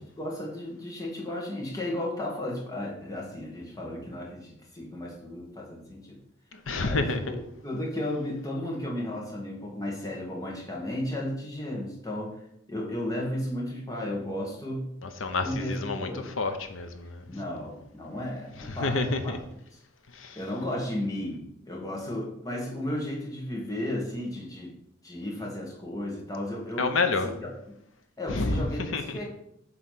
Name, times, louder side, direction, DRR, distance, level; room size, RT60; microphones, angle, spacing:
voice 1, 0.0-6.2 6.8-7.4 7.6-12.3 12.7-14.9 15.4-16.3 17.3-19.4 20.3-24.7 25.0-26.9 27.4-27.5 28.2-29.2, left 1 dB, 20° left, -2 dB, 1.6 m, -34 dB
voice 2, 6.5-7.2 15.0-17.2 18.6-19.4 20.1-20.4 26.8-27.3 28.3-28.6 28.9-29.2, left 3 dB, 85° left, 8 dB, 0.8 m, -29 dB
7.8 x 3.2 x 5.7 m, 0.76 s
head